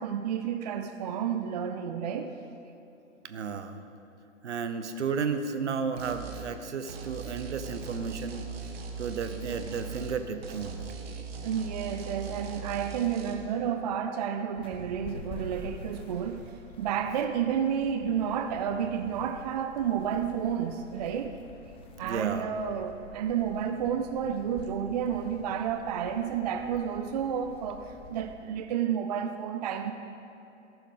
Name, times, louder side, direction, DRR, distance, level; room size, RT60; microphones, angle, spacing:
voice 1, 0.0-2.4 11.4-16.4 16.8-21.3 22.0-29.9, right 8 dB, 35° right, 8 dB, 0.4 m, -31 dB
voice 2, 3.2-3.8 4.4-8.4 9.0-10.9 22.0-22.6, right 5 dB, 65° right, 9 dB, 0.9 m, -33 dB
sound 1, 6.0-6.5 6.9-10.2 10.4-13.3, right 5 dB, 50° right, 1.5 m, -40 dB
sound 2, 14.5-28.3, left 1 dB, 15° left, 1.2 m, -48 dB
14.0 x 11.5 x 3.8 m, 2.9 s
figure-of-eight pair, 115°, 38 cm